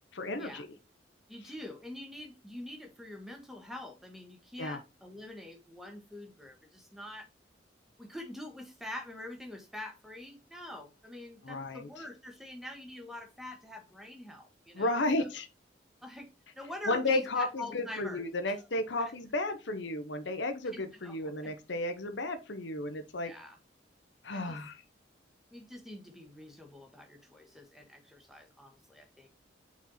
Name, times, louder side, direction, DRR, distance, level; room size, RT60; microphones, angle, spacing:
voice 1, 0.1-0.7 4.6-4.8 11.4-11.9 14.7-15.5 16.9-23.3 24.2-24.8, left 2 dB, 70° left, 0.8 m, -33 dB
voice 2, 1.3-7.3 8.0-15.3 16.0-16.3 16.5-18.6 19.0-19.1 20.7-21.5 23.2-23.6 24.3-24.6 25.5-29.3, left 1 dB, ahead, 1.4 m, -45 dB
6.2 x 4.3 x 4.2 m
head